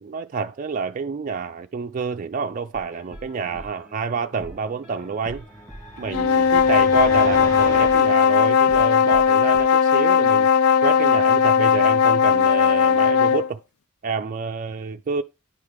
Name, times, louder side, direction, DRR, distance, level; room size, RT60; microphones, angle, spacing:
voice 1, 0.0-5.4 6.0-10.5 10.8-13.6 14.0-15.2, right 5 dB, 35° right, 0.3 m, -28 dB
sound 1, 2.7-9.6, equal, 5° right, 2.3 m, -44 dB
sound 2, 5.3-8.2, equal, 15° left, 1.2 m, -36 dB
sound 3, 6.1-13.5, left 7 dB, 85° left, 0.5 m, -17 dB
9.8 x 4.9 x 3.4 m
head